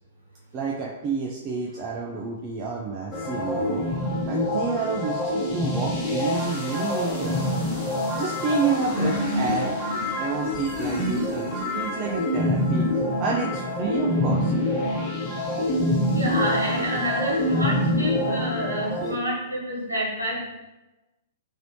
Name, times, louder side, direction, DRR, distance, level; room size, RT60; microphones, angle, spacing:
voice 1, 0.5-3.8 4.3-7.5 8.2-9.8 10.2-12.9 13.2-14.5, right 4 dB, 30° right, -2 dB, 0.4 m, -29 dB
sound 1, 3.1-19.1, left 1 dB, 15° left, 1.0 m, -26 dB
voice 2, 16.0-20.4, right 1 dB, 85° right, -6 dB, 1.2 m, -28 dB
3.0 x 2.6 x 2.9 m, 1.0 s
figure-of-eight pair, 110°, 0 cm